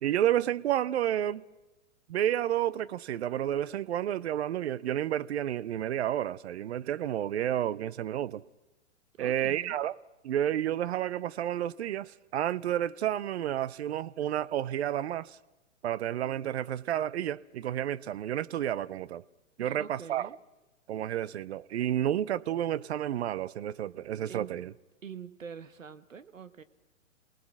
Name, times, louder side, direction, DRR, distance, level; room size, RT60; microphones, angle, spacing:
voice 1, 0.0-1.4 2.1-8.4 9.2-9.9 10.2-15.4 15.8-19.2 19.6-20.3 20.9-24.7, right 11 dB, 55° right, 0.8 m, -30 dB
voice 2, 9.1-9.8 19.6-20.4 24.2-24.5 25.0-26.6, right 7 dB, 80° right, 1.5 m, -45 dB
28.0 x 19.5 x 6.0 m
figure-of-eight pair, 115°, 38 cm